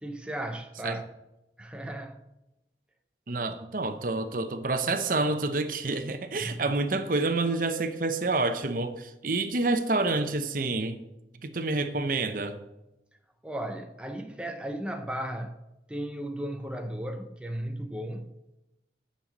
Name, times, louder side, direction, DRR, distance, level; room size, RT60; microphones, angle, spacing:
voice 1, 0.0-1.1 1.6-2.2 6.4-6.7 13.4-15.6 15.9-18.4, right 1 dB, 5° right, 0.6 m, -35 dB
voice 2, 3.3-11.0 11.4-12.6, right 3 dB, 50° right, 0.8 m, -28 dB
10.0 x 5.6 x 7.3 m
head